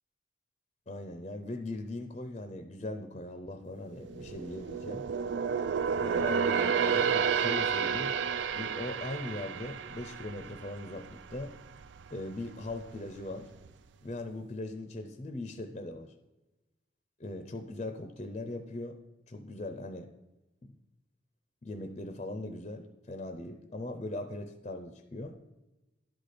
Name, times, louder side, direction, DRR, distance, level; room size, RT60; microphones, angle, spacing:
voice 1, 0.9-5.1 6.0-8.1 8.5-11.5 12.1-13.5 14.0-16.1 17.2-19.0 19.3-20.1 20.6-20.7 21.6-25.4, left 2 dB, 35° left, 7 dB, 0.5 m, -40 dB
sound 1, 3.9-11.5 11.8-12.1 12.6-13.3 13.7-13.8, right 6 dB, 75° right, 0.3 m, -31 dB
10.5 x 4.2 x 5.0 m, 1.0 s
head